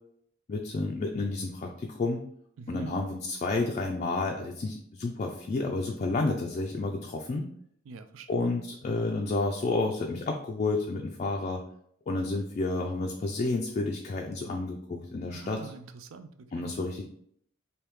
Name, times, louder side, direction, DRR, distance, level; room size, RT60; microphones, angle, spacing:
voice 1, 0.5-2.2 2.7-7.5 8.3-11.6 12.1-15.7 16.5-17.0, left 3 dB, 35° left, 1 dB, 0.3 m, -30 dB
voice 2, 2.6-3.0 7.9-8.4 15.3-16.7, right 4 dB, 90° right, 9 dB, 0.4 m, -45 dB
3.3 x 2.7 x 3.1 m, 0.68 s
head